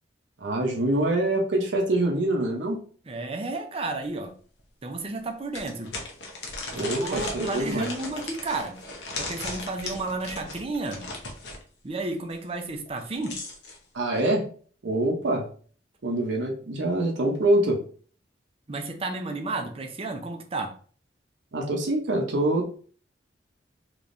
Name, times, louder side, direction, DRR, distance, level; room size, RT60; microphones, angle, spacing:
voice 1, 0.4-2.8 6.7-7.9 13.9-14.5 14.8-15.4 16.0-17.8 21.5-22.8, right 1 dB, 80° right, 0 dB, 0.8 m, -25 dB
voice 2, 3.1-4.3 4.8-5.9 6.7-8.8 9.2-11.0 11.8-13.4 18.7-20.7, right 3 dB, 30° right, 4 dB, 0.6 m, -32 dB
sound 1, 4.0-4.1 4.6-4.7 5.5-11.6 12.9-13.8, left 2 dB, 70° left, 0.8 m, -37 dB
3.4 x 3.0 x 2.6 m, 0.43 s
head